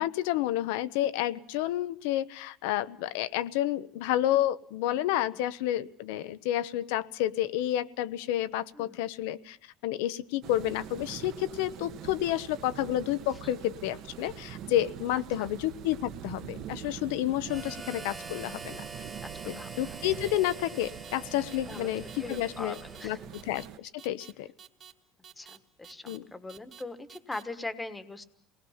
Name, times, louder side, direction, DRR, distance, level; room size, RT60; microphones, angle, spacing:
voice 1, 0.0-9.6 9.8-18.8 19.5-22.8 23.0-24.5 26.1-26.3, left 13 dB, 85° left, 15 dB, 0.8 m, -30 dB
sound 1, 10.4-23.8, right 10 dB, 50° right, 1.0 m, -44 dB
Harmonica, 17.5-23.5, right 3 dB, 10° right, 1.2 m, -45 dB
voice 2, 19.2-19.7 21.7-21.9 22.2-23.3 25.4-28.2, left 2 dB, 10° left, 11 dB, 1.3 m, -41 dB
sound 2, 20.2-20.6 20.8-21.2 21.5-21.8 22.1-22.4 22.7-23.1 23.3-23.7 24.0-24.3 24.6-24.9 25.2-25.6 25.8-26.2 26.5-26.8 27.1-27.4, right 8 dB, 30° right, 1.5 m, -50 dB
28.5 x 19.5 x 5.7 m, 0.62 s
cardioid pair, 155°, 0 cm